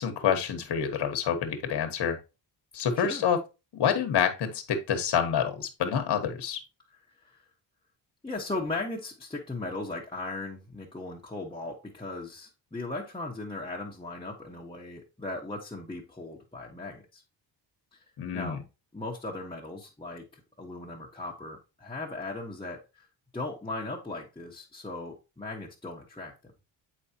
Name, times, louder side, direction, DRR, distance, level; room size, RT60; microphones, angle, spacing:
voice 1, 0.0-2.2 2.7-3.4 3.7-6.6 18.2-18.6, left 8 dB, 60° left, 6 dB, 1.3 m, -27 dB
voice 2, 8.2-17.2 18.3-18.6 18.9-23.1 23.3-26.3, left 2 dB, 10° left, -4 dB, 1.2 m, -37 dB
7.7 x 4.8 x 2.9 m, 0.27 s
cardioid pair, 110°, 45 cm